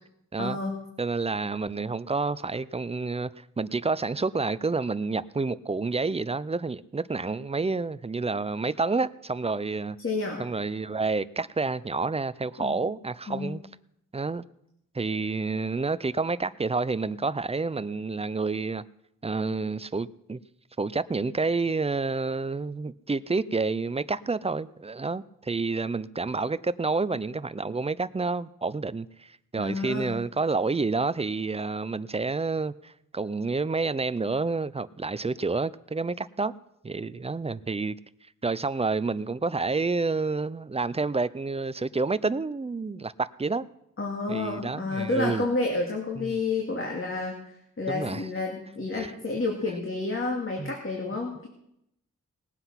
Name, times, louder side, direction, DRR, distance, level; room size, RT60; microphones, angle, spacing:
voice 1, 0.4-0.7 10.0-10.4 12.6-12.8 13.3-13.5 29.6-30.2 44.0-51.5, left 3 dB, 40° left, 2.3 m, -30 dB
voice 2, 1.0-10.0 10.4-13.6 14.1-14.4 14.9-18.8 19.2-20.4 20.8-36.5 36.8-38.0 38.4-43.7 44.3-45.5 46.2-46.4 47.9-48.3 48.9-49.1 50.6-50.7, right 3 dB, 20° right, 0.4 m, -29 dB
19.0 x 7.8 x 5.8 m
wide cardioid pair, 90°, 32 cm